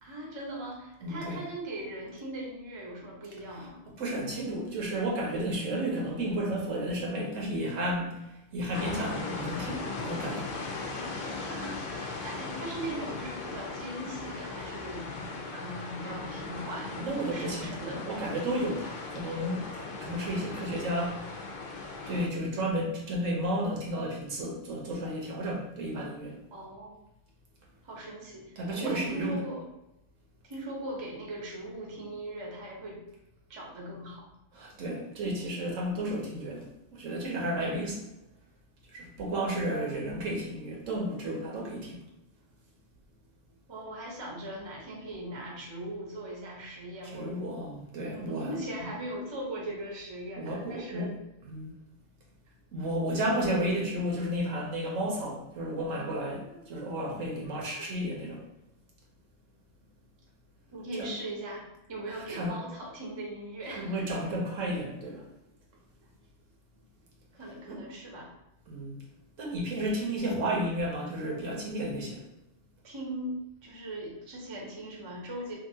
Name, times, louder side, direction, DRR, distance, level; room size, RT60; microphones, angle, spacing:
voice 1, 0.0-3.8 11.2-15.1 15.5-17.0 17.3-18.0 26.5-27.0 27.8-29.7 30.4-33.0 33.5-34.2 43.7-47.3 48.1-51.2 53.2-53.4 57.8-57.9 60.7-64.1 67.3-68.3 72.8-73.3 73.6-75.5, right 1 dB, 30° right, -2 dB, 0.6 m, -39 dB
voice 2, 1.0-1.4 3.5-3.7 4.0-8.3 8.5-10.5 16.1-16.4 16.9-21.3 22.1-26.4 28.6-29.4 34.5-38.1 38.9-42.0 47.0-48.6 50.4-51.1 51.5-51.7 52.7-58.4 60.9-61.1 62.1-62.6 63.7-65.2 67.7-67.8 68.7-69.0 69.4-72.2, right 1 dB, 85° right, -2 dB, 1.2 m, -32 dB
sound 1, 8.7-22.3, left 3 dB, 65° left, 0.4 m, -38 dB
2.8 x 2.5 x 2.7 m, 0.89 s
omnidirectional pair, 1.3 m